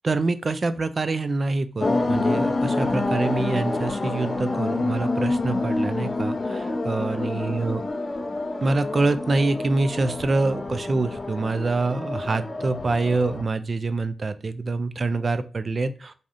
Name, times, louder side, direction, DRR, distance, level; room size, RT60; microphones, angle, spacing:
voice 1, 0.0-7.8 8.6-16.1, right 3 dB, 30° right, 12 dB, 0.3 m, -25 dB
sound 1, 1.8-13.4, left 2 dB, 30° left, 0.5 m, -27 dB
4.7 x 2.7 x 2.5 m, 0.39 s
wide cardioid pair, 155°, 0 cm